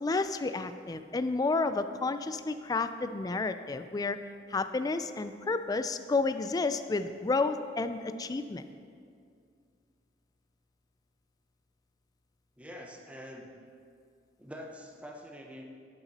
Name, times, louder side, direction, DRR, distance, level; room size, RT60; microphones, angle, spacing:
voice 1, 0.0-4.2 4.5-8.6, left 3 dB, 20° left, 11 dB, 0.3 m, -31 dB
voice 2, 12.6-13.5 14.4-15.6, equal, 5° right, 2 dB, 0.8 m, -45 dB
10.5 x 5.9 x 4.1 m, 2.3 s
head